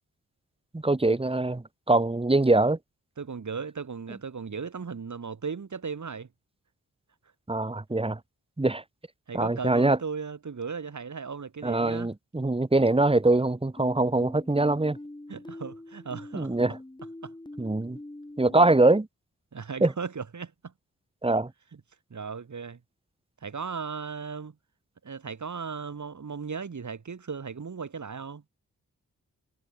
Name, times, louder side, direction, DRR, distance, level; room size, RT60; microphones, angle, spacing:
voice 1, 0.7-2.8 7.5-8.2 8.6-8.8 9.3-10.0 11.6-15.0 16.3-16.7 17.6-18.0 18.4-19.1 19.8-19.9 21.2-21.5, right 2 dB, 15° right, 2.1 m, -23 dB
voice 2, 3.2-6.3 9.3-12.1 15.3-16.5 17.2-17.3 19.5-20.7 21.7-21.8 22.1-22.8 23.4-24.6 25.0-28.4, right 5 dB, 60° right, 7.0 m, -36 dB
sound 1, 13.8-18.8, left 1 dB, 15° left, 3.7 m, -44 dB
wide cardioid pair, 115°, 32 cm